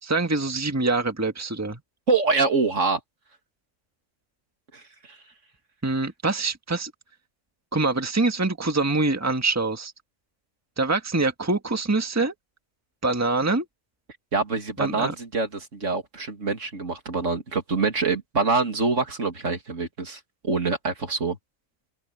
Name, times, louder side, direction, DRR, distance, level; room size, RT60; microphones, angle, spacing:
voice 1, 0.0-1.8 5.8-6.9 7.7-9.9 10.8-12.3 13.0-13.6 14.8-15.1, right 3 dB, 10° right, 1.5 m, -24 dB
voice 2, 2.1-3.0 4.7-5.2 14.3-21.4, right 4 dB, 70° right, 2.8 m, -25 dB
open air
omnidirectional pair, 1.3 m